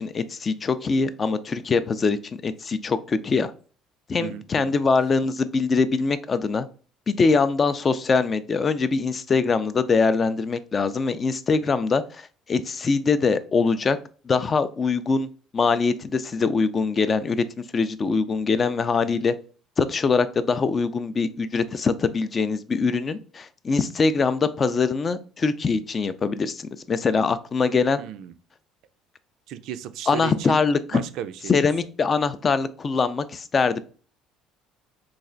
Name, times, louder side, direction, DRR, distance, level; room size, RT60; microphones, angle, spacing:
voice 1, 0.0-2.2 2.4-3.5 4.1-6.7 7.1-14.0 14.3-15.3 15.5-17.4 17.7-19.3 19.8-28.0 30.1-31.0 31.5-33.8, left 4 dB, 30° left, 13 dB, 0.3 m, -23 dB
voice 2, 4.2-4.7 19.0-19.2 28.0-28.3 29.5-30.6 30.9-31.5, right 10 dB, 70° right, 12 dB, 0.3 m, -35 dB
3.2 x 2.4 x 3.8 m, 0.39 s
cardioid pair, 120°, 0 cm